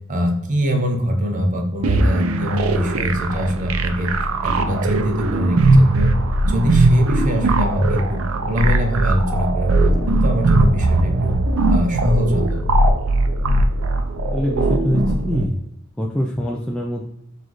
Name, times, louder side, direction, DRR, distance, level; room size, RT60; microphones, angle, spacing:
voice 1, 0.1-4.1 4.4-6.1 6.4-11.4 11.7-12.6, equal, 40° right, 4 dB, 0.7 m, -23 dB
sound 1, 1.8-15.4, right 2 dB, 80° right, 0.5 m, -19 dB
voice 2, 14.3-15.6 16.0-17.0, equal, 5° left, -3 dB, 0.3 m, -23 dB
6.1 x 2.5 x 3.0 m, 0.80 s
head